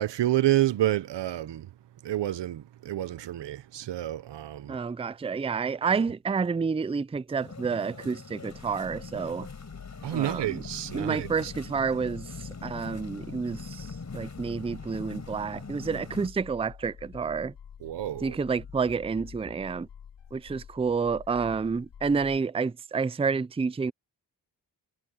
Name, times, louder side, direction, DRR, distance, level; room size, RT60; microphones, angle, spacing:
voice 1, 0.0-1.7 2.0-4.8 10.0-11.5 17.8-18.4, right 13 dB, 90° right, 0.9 m, -29 dB
voice 2, 4.7-9.5 10.1-10.6 10.9-13.9 14.1-17.5 18.2-19.9 20.3-23.9, right 5 dB, 15° right, 0.4 m, -29 dB
sound 1, 7.4-16.3, left 4 dB, 40° left, 6.7 m, -42 dB
sound 2, 8.5-22.4, left 8 dB, 85° left, 2.9 m, -48 dB
cardioid pair, 70°, 41 cm